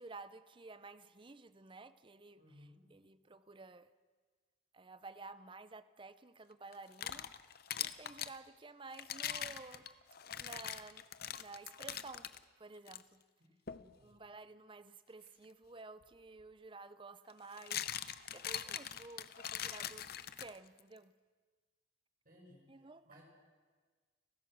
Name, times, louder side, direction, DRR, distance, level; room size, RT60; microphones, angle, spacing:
voice 1, 0.0-3.9 4.7-7.3 7.8-9.9 10.2-12.3 12.6-13.2 14.0-20.1 20.4-21.1 22.7-23.1, right 3 dB, 25° right, 0.6 m, -53 dB
voice 2, 2.4-2.8 13.4-14.1 22.2-22.7 23.0-23.2, left 1 dB, 45° right, 6.5 m, -61 dB
sound 1, 6.7-8.4 8.9-12.4 12.9-13.0 13.7-13.9 16.0-16.1 17.3-20.8, left 10 dB, 50° left, 0.7 m, -42 dB
30.0 x 15.5 x 6.2 m
head